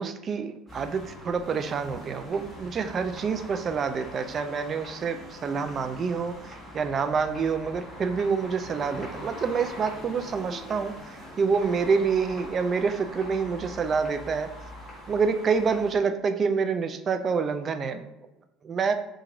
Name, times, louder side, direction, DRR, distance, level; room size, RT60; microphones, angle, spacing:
voice 1, 0.0-10.9 11.4-14.5 15.1-18.1 18.6-18.9, right 5 dB, 35° right, 9 dB, 0.3 m, -27 dB
sound 1, 0.7-15.9, left 1 dB, 5° right, 1.4 m, -43 dB
2.9 x 2.5 x 3.8 m, 0.94 s
supercardioid pair, 110°, 0 cm